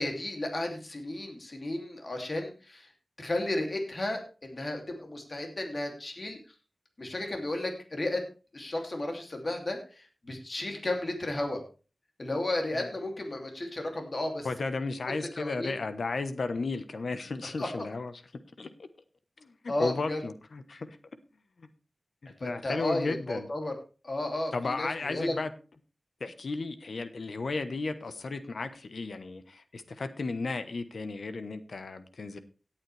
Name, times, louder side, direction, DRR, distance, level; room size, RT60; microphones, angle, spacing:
voice 1, 0.0-2.9 3.2-6.4 7.0-8.2 8.5-11.6 12.2-14.5 14.8-15.8 17.6-17.8 19.7-20.2 22.4-23.7 24.0-25.3, left 1 dB, 45° left, 3 dB, 2.8 m, -33 dB
voice 2, 14.4-18.1 18.6-18.9 19.4-21.0 21.6-21.7 22.2-23.5 24.5-25.5 26.2-32.4, left 3 dB, 90° left, 11 dB, 1.1 m, -34 dB
17.0 x 8.9 x 3.4 m, 0.35 s
wide cardioid pair, 85°, 0 cm